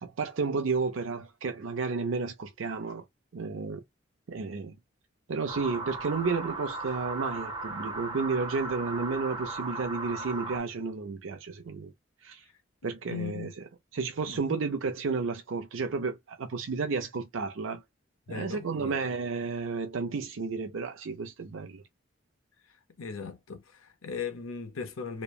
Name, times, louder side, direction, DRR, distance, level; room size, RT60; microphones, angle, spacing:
voice 1, 0.0-3.0 3.3-3.8 4.3-4.8 5.3-11.9 12.2-12.4 12.8-13.5 13.9-17.8 18.3-21.8, right 4 dB, 75° right, 0.5 m, -32 dB
sound 1, 5.5-10.6, right 3 dB, 25° right, 0.7 m, -37 dB
voice 2, 13.1-13.5 14.3-14.4 18.3-19.0 23.0-25.2, left 5 dB, 90° left, 0.7 m, -38 dB
3.0 x 2.1 x 2.3 m
head